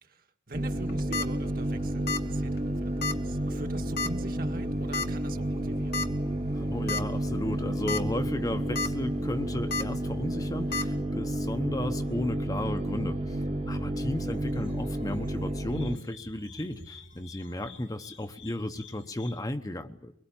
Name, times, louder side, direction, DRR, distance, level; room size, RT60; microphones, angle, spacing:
voice 1, 0.0-6.0 14.9-15.2, right 2 dB, 50° right, 4 dB, 1.8 m, -43 dB
sound 1, 0.5-16.0, right 1 dB, 35° right, 1.4 m, -31 dB
sound 2, 0.8-1.3 2.1-2.3 2.6-2.7 3.0-3.2 4.0-4.3 4.9-5.1 5.9-6.1 6.5-6.6 6.9-7.0 7.7-8.0 8.4-8.9 9.7-9.8 10.7-10.8, left 4 dB, 55° left, 1.3 m, -30 dB
voice 2, 6.5-20.1, left 1 dB, 20° left, 7 dB, 0.9 m, -34 dB
sound 3, 14.2-19.4, left 4 dB, 90° left, 3.2 m, -50 dB
23.0 x 22.0 x 8.8 m, 0.70 s
head